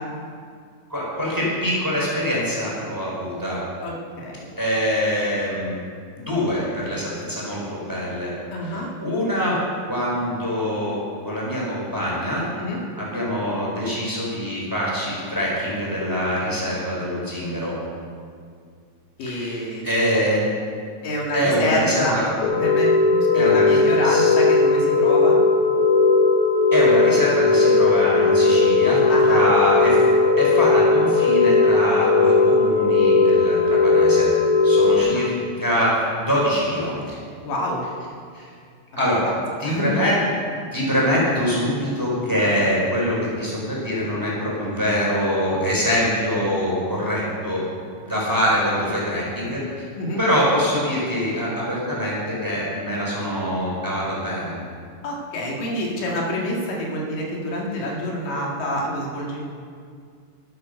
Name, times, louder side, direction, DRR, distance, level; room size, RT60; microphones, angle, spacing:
voice 1, 0.9-3.6 4.6-5.7 6.1-8.3 8.6-9.6 9.9-11.0 11.2-12.4 12.7-17.7 19.2-20.4 21.3-22.3 23.3-24.3 26.7-30.0 30.4-34.3 34.6-37.2 38.3-38.4 39.0-39.3 39.6-40.2 40.7-47.6 48.0-49.6 50.2-54.5 57.8-57.9, equal, 5° right, -5 dB, 3.6 m, -24 dB
voice 2, 3.8-4.5 8.5-8.9 12.6-12.8 19.2-19.9 21.0-22.2 22.6-25.4 29.1-29.5 35.0-35.3 37.5-37.8 39.3-39.4 39.6-40.1 50.0-50.3 55.0-59.4, left 1 dB, 90° left, -2 dB, 3.7 m, -27 dB
sound 1, 22.4-35.0, left 3 dB, 70° left, 3.4 m, -17 dB
11.5 x 11.0 x 6.5 m, 2.2 s
omnidirectional pair, 3.8 m